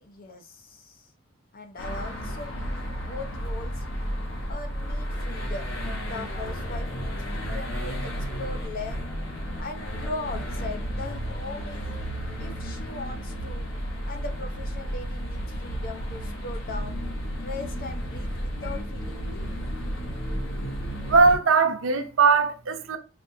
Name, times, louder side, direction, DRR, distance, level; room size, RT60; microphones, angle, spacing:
voice 1, 0.0-1.1 1.5-3.9 4.5-5.7 6.0-9.2 9.6-11.8 12.4-13.7 14.1-17.0 17.4-19.7, left 3 dB, 50° left, 0.7 m, -39 dB
sound 1, 1.8-21.4, equal, 70° left, 1.1 m, -32 dB
voice 2, 21.1-23.0, right 4 dB, 90° right, 0.6 m, -20 dB
5.1 x 2.5 x 2.7 m
head